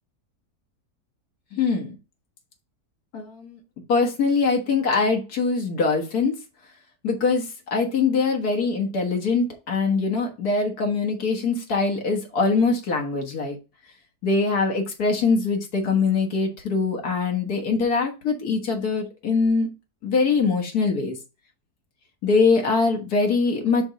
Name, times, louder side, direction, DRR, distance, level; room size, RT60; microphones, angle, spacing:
voice 1, 1.5-2.0 3.1-3.6 3.9-6.3 7.0-7.4 7.7-13.6 14.2-19.7 20.0-21.2 22.2-23.8, left 4 dB, 70° left, 2 dB, 1.9 m, -23 dB
6.2 x 3.4 x 5.1 m, 0.29 s
omnidirectional pair, 1.7 m